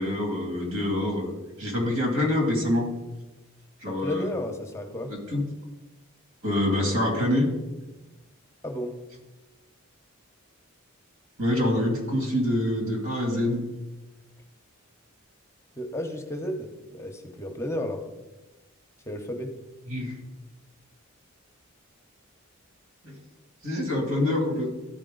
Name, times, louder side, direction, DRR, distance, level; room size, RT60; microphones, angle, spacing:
voice 1, 0.0-1.3 1.6-2.9 3.8-4.3 5.1-5.4 6.4-7.5 11.4-13.7 19.9-20.1 23.0-23.1 23.6-24.7, left 1 dB, 90° right, 0 dB, 2.5 m, -25 dB
voice 2, 3.9-5.1 8.6-9.0 15.8-18.0 19.1-19.5, equal, 15° left, 4 dB, 0.7 m, -33 dB
13.0 x 4.6 x 3.8 m, 1.1 s
head